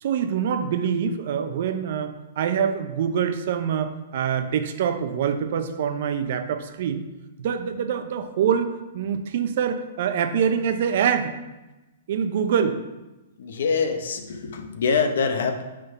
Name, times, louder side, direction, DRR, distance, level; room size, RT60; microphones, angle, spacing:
voice 1, 0.0-7.0 7.4-11.3 12.1-12.8, right 7 dB, 55° right, 9 dB, 0.6 m, -25 dB
voice 2, 13.4-15.6, left 5 dB, 75° left, 6 dB, 0.8 m, -24 dB
5.8 x 3.8 x 5.4 m, 1.1 s
hypercardioid pair, 150°, 0 cm